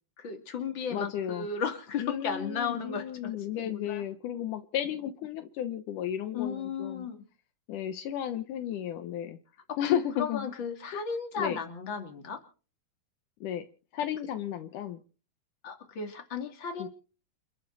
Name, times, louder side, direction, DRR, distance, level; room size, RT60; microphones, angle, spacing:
voice 1, 0.2-4.0 6.3-7.2 9.7-12.4 15.6-16.9, left 6 dB, 40° left, 5 dB, 3.1 m, -35 dB
voice 2, 0.9-1.5 2.0-7.1 7.7-9.4 9.8-10.5 10.9-11.0 11.4-11.6 13.4-13.7 13.9-15.0 16.8-16.9, left 10 dB, 80° left, 10 dB, 2.5 m, -33 dB
29.0 x 10.5 x 4.1 m, 0.39 s
omnidirectional pair, 3.7 m